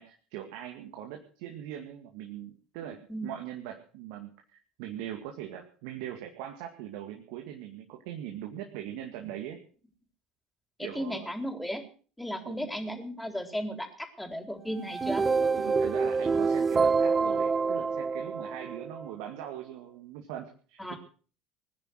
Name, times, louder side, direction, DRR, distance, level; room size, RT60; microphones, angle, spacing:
voice 1, 0.0-9.6 10.8-11.3 12.4-12.7 15.5-20.9, right 11 dB, 70° right, 3 dB, 2.2 m, -41 dB
voice 2, 10.8-11.9 12.2-15.2 20.8-21.0, equal, 5° left, 6 dB, 4.0 m, -35 dB
sound 1, 14.8-19.1, right 4 dB, 30° right, 0.7 m, -27 dB
20.5 x 10.0 x 6.5 m, 0.43 s
hypercardioid pair, 65°, 0 cm